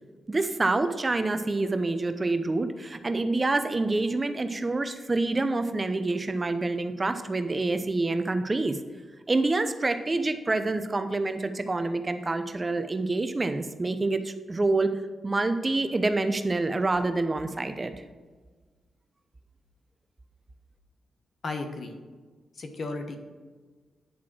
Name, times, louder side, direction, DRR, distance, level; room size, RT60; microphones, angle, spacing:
voice 1, 0.3-8.8 9.3-14.9 15.2-17.9, right 2 dB, 30° right, 9 dB, 0.7 m, -27 dB
voice 2, 21.4-22.0 22.5-23.2, left 3 dB, 60° left, 5 dB, 1.1 m, -34 dB
9.6 x 3.7 x 6.1 m, 1.4 s
cardioid pair, 65°, 0 cm